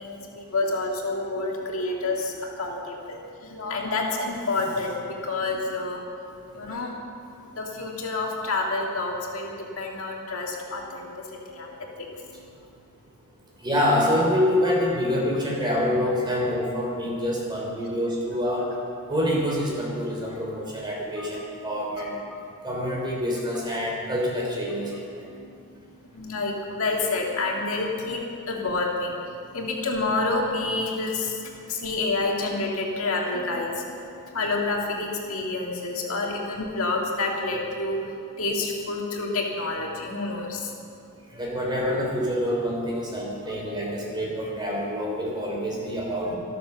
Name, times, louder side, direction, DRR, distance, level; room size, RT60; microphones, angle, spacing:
voice 1, 0.0-6.0 6.5-6.9 7.5-11.2 11.5-11.7 12.0-12.5 21.2-21.3 22.0-22.1 25.3-38.0 38.4-40.7 46.3-46.4, left 3 dB, 70° left, -1 dB, 2.1 m, -29 dB
voice 2, 13.6-18.7 19.1-22.2 22.6-25.3 41.3-46.3, equal, 20° right, -3 dB, 3.5 m, -26 dB
12.5 x 12.5 x 6.9 m, 2.4 s
head